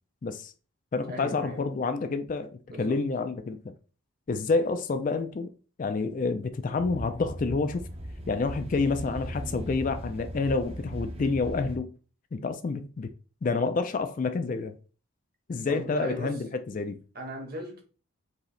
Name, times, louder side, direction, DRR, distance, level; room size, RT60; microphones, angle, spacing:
voice 1, 0.2-0.5 0.9-3.6 4.3-5.5 5.8-7.8 8.3-11.9 12.3-13.1 13.4-14.8 15.5-17.0, left 4 dB, 35° left, 0.3 m, -28 dB
voice 2, 1.1-1.6 2.7-3.0 15.7-16.4 17.1-17.8, right 1 dB, 45° right, 1.2 m, -37 dB
sound 1, 6.8-11.8, equal, 25° right, 0.6 m, -38 dB
4.8 x 2.8 x 3.2 m
head